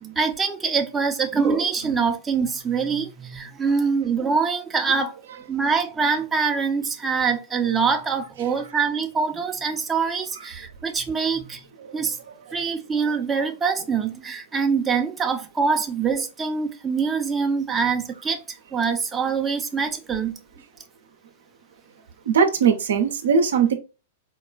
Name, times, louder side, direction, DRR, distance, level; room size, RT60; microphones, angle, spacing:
voice 1, 0.0-5.1 5.5-11.6 11.9-12.2 12.5-20.3, right 5 dB, 15° right, 0.6 m, -24 dB
voice 2, 22.3-23.7, right 6 dB, 75° right, 0.6 m, -19 dB
4.5 x 2.3 x 2.3 m
hypercardioid pair, 105°, 0 cm